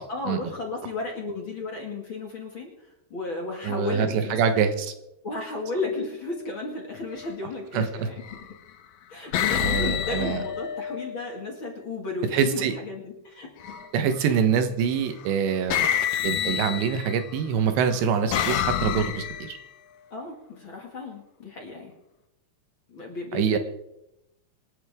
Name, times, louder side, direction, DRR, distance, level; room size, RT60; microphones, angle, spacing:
voice 1, 0.1-4.6 5.2-8.2 9.1-13.7 14.2-14.5 20.1-21.9 22.9-23.6, left 3 dB, 35° left, 0 dB, 2.4 m, -34 dB
voice 2, 3.6-4.9 7.7-8.1 9.6-10.4 12.3-12.7 13.9-15.9 16.2-19.6 23.3-23.6, right 7 dB, 90° right, 8 dB, 3.5 m, -25 dB
sound 1, 7.1-7.3 8.2-8.7 9.3-11.4 13.6-14.1 15.2-15.3 15.7-17.3 17.9-19.6, left 9 dB, 85° left, 1.6 m, -28 dB
26.0 x 10.5 x 3.7 m, 0.86 s
omnidirectional pair, 4.8 m